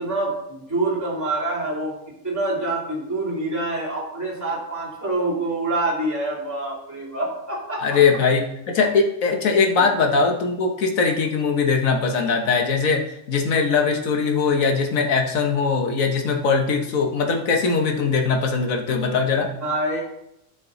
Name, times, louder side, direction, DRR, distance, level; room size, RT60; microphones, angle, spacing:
voice 1, 0.0-1.9 2.2-8.0 9.8-9.9 19.6-20.0, right 2 dB, 10° right, -7 dB, 2.9 m, -26 dB
voice 2, 7.8-19.5, left 5 dB, 85° left, 2 dB, 1.5 m, -21 dB
10.5 x 6.0 x 4.0 m, 0.81 s
omnidirectional pair, 1.4 m